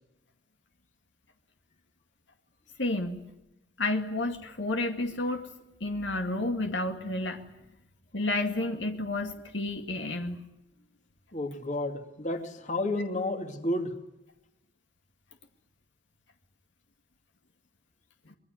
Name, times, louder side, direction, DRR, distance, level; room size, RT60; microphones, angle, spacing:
voice 1, 2.8-3.3 3.8-5.5 5.8-7.4 8.1-10.5 18.3-18.4, left 2 dB, 70° left, 5 dB, 2.2 m, -31 dB
voice 2, 11.3-13.9, left 1 dB, 40° left, 6 dB, 2.8 m, -31 dB
25.5 x 21.5 x 9.6 m, 0.90 s
head